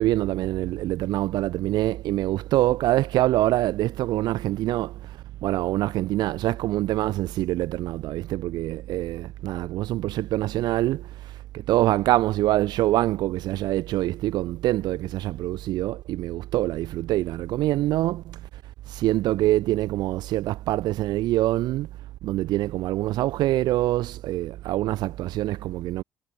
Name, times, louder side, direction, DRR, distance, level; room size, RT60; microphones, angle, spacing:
voice 1, 0.0-5.0 5.4-11.1 11.5-18.4 18.9-21.9 22.2-26.0, right 15 dB, 70° right, 0.7 m, -25 dB
cardioid pair, 125°, 7 cm